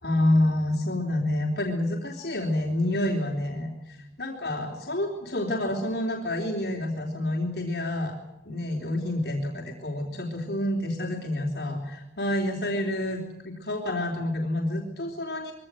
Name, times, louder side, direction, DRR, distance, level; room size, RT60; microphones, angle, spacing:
voice 1, 0.0-8.1 8.5-13.2 13.4-15.5, left 1 dB, 70° left, 0 dB, 3.9 m, -28 dB
23.5 x 17.5 x 9.6 m, 0.96 s
head